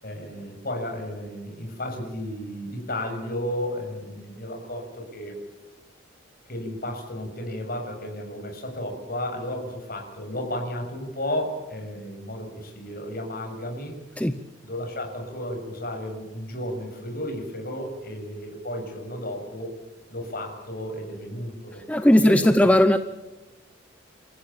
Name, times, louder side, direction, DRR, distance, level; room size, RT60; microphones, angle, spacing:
voice 1, 0.0-5.4 6.5-13.9 14.6-19.7 20.1-21.8 22.2-22.7, left 1 dB, 50° left, 3 dB, 6.9 m, -33 dB
voice 2, 21.9-23.0, left 1 dB, 5° left, 9 dB, 0.7 m, -17 dB
29.5 x 14.5 x 8.8 m, 1.1 s
head